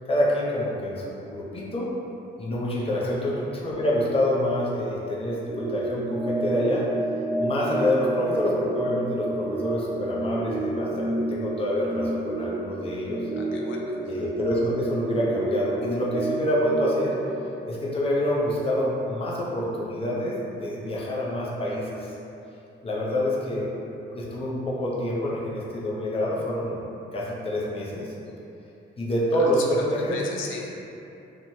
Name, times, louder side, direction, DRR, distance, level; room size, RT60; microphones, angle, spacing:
voice 1, 0.1-1.9 2.4-6.9 7.4-13.2 14.1-17.1 17.7-22.1 22.8-23.7 24.1-26.8 27.1-28.1 29.0-30.2, left 1 dB, 30° left, -5 dB, 0.6 m, -27 dB
sound 1, 5.5-17.4, right 1 dB, 15° right, 0.4 m, -30 dB
voice 2, 13.3-14.0 29.4-29.7 30.0-30.7, left 4 dB, 80° left, 0 dB, 0.4 m, -37 dB
3.0 x 2.2 x 2.6 m, 2.8 s
cardioid pair, 90°, 20 cm